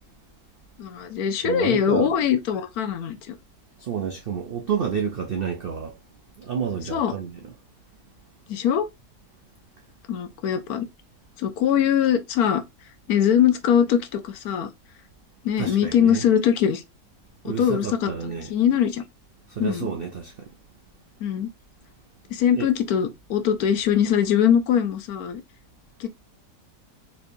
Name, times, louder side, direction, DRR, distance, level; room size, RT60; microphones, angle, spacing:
voice 1, 0.8-3.4 6.9-7.1 8.5-8.9 10.1-10.9 11.4-12.6 13.1-14.7 15.4-16.8 17.4-19.0 19.6-19.9 21.2-21.5 22.3-25.4 26.0-26.1, left 9 dB, 70° left, 1.0 m, -22 dB
voice 2, 1.4-2.1 3.8-6.0 6.4-7.4 15.6-16.2 17.4-18.5 19.5-20.5 22.5-22.7, right 7 dB, 65° right, 0.5 m, -29 dB
4.3 x 3.2 x 2.6 m
omnidirectional pair, 1.8 m